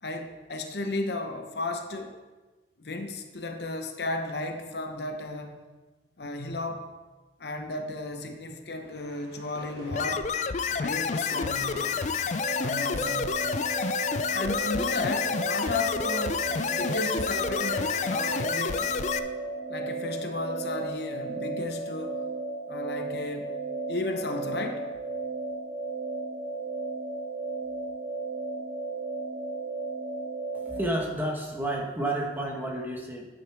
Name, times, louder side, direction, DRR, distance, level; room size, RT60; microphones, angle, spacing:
voice 1, 0.0-2.2 2.8-5.6 6.2-6.9 7.4-10.3 10.8-11.8 12.6-13.3 14.3-18.9 19.7-22.3 22.7-23.5 23.9-24.9, left 2 dB, 65° left, 5 dB, 0.9 m, -34 dB
sound 1, 8.8-20.3, equal, 60° right, 2.1 m, -49 dB
sound 2, 9.9-19.2, left 6 dB, 40° left, 0.3 m, -29 dB
sound 3, 12.4-30.8, right 3 dB, 90° right, 2.6 m, -34 dB
voice 2, 30.5-33.3, right 1 dB, 10° right, -1 dB, 1.1 m, -31 dB
9.4 x 8.9 x 3.4 m, 1.2 s
head